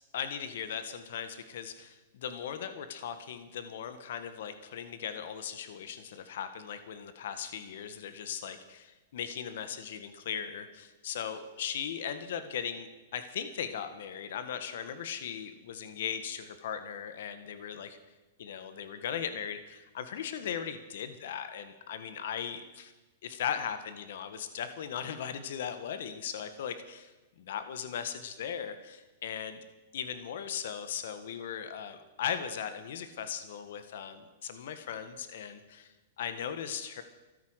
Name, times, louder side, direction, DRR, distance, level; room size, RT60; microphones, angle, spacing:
voice 1, 0.1-18.0 18.4-22.9 23.2-27.1 27.4-29.6 29.9-35.9 36.2-37.0, left 8 dB, 70° left, 10 dB, 1.5 m, -38 dB
14.5 x 12.5 x 6.4 m, 1.1 s
hypercardioid pair, 140°, 0 cm